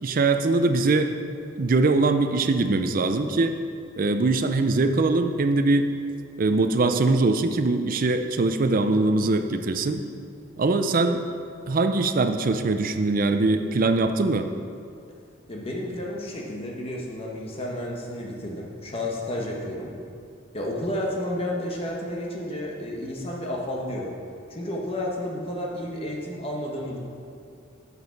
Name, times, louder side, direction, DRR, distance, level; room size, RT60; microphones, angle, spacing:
voice 1, 0.0-1.1 1.6-3.5 4.0-5.9 6.4-10.0 10.6-11.2 11.7-14.5, right 3 dB, 45° right, 8 dB, 0.5 m, -22 dB
voice 2, 15.5-19.9 20.5-24.1 24.5-27.0, left 1 dB, 30° left, -2 dB, 1.2 m, -31 dB
7.1 x 6.6 x 5.7 m, 2.4 s
head